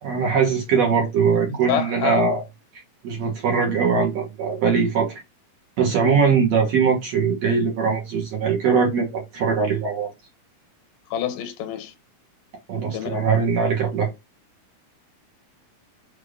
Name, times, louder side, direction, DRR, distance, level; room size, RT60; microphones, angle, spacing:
voice 1, 0.0-2.4 3.0-5.2 5.8-10.1 12.7-14.1, right 5 dB, 60° right, 1.9 m, -21 dB
voice 2, 1.7-2.2 11.1-11.9 12.9-13.3, left 9 dB, 75° left, 2.9 m, -26 dB
6.8 x 2.8 x 5.0 m
omnidirectional pair, 4.5 m